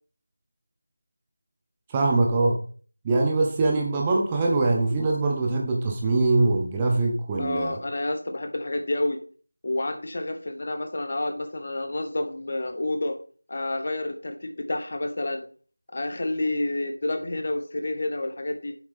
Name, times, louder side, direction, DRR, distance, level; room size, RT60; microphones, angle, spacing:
voice 1, 1.9-2.6 3.0-7.8, right 3 dB, 10° right, 0 dB, 0.6 m, -23 dB
voice 2, 7.4-9.2 9.6-13.2 13.5-15.5 15.9-18.8, left 2 dB, 35° left, 7 dB, 0.9 m, -29 dB
7.7 x 7.2 x 3.5 m, 0.42 s
figure-of-eight pair, 170°, 0 cm